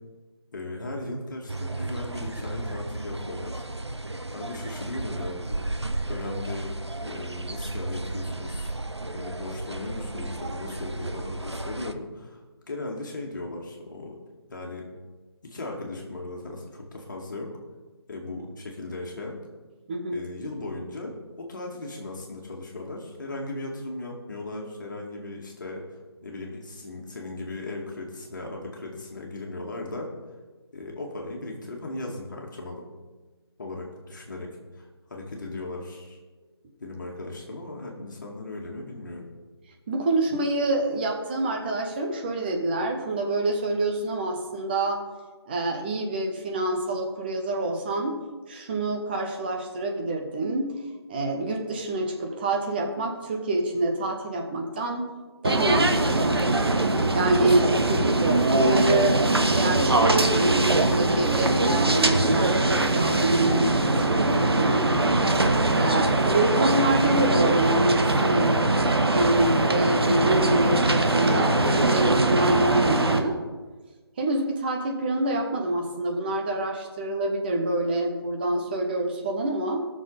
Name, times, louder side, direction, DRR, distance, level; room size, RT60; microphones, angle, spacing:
voice 1, 0.5-3.6 4.3-5.7 6.1-6.7 7.0-8.7 9.1-14.2 14.5-14.9 15.4-17.5 18.1-19.4 20.1-30.1 30.7-32.8 33.6-36.2 36.8-39.3 57.5-58.0, left 2 dB, 45° left, -1 dB, 2.2 m, -37 dB
sound 1, 1.5-11.9, right 2 dB, 90° right, 0.8 m, -34 dB
voice 2, 19.9-20.3 39.9-45.0 45.4-50.8 51.1-55.1 55.4-56.4 57.1-59.2 59.5-64.9 65.7-68.7 69.1-73.4 74.2-79.8, right 2 dB, 20° right, 2 dB, 1.1 m, -27 dB
sound 2, 55.4-73.2, right 2 dB, 70° right, 1.3 m, -22 dB
19.0 x 6.6 x 4.1 m, 1.3 s
figure-of-eight pair, 155°, 14 cm